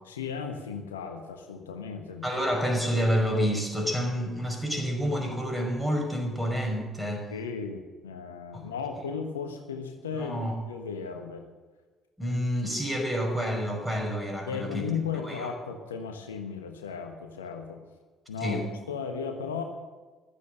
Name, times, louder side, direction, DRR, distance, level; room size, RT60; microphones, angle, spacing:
voice 1, 0.0-2.4 7.3-11.4 14.5-17.8 18.3-18.6 18.9-19.6, left 6 dB, 80° left, 5 dB, 1.3 m, -35 dB
voice 2, 2.2-7.3 8.5-8.7 10.2-10.6 12.2-14.9 15.2-15.5 18.4-18.7, equal, 5° right, 2 dB, 5.6 m, -28 dB
15.0 x 13.0 x 6.7 m, 1.3 s
figure-of-eight pair, 50°, 0 cm